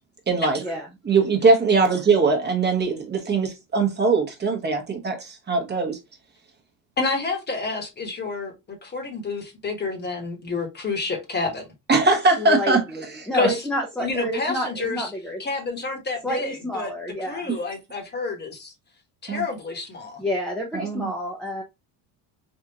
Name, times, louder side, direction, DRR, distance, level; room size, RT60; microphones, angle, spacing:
voice 1, 0.3-0.6 1.1-6.0 11.9-12.8 19.3-19.4 20.7-21.1, right 4 dB, 25° right, 0.9 m, -21 dB
voice 2, 7.0-11.7 13.3-13.6 14.0-15.1 15.4-16.9 17.2-18.7 19.2-20.2, left 3 dB, 25° left, 1.1 m, -29 dB
voice 3, 12.4-15.4 16.2-17.5 20.2-21.6, equal, ahead, 0.6 m, -29 dB
3.5 x 2.5 x 2.7 m
cardioid pair, 110°, 38 cm